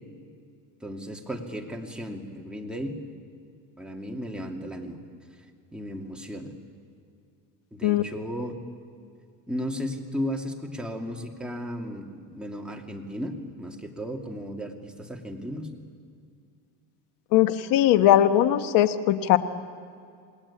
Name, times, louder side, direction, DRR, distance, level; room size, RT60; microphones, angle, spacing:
voice 1, 0.8-3.0 3.8-5.0 5.7-6.5 7.7-8.6 9.5-15.7, equal, 5° right, 0 dB, 2.6 m, -35 dB
voice 2, 17.3-19.4, left 12 dB, 75° left, 10 dB, 1.4 m, -20 dB
28.5 x 20.0 x 8.7 m, 2.3 s
cardioid pair, 135°, 34 cm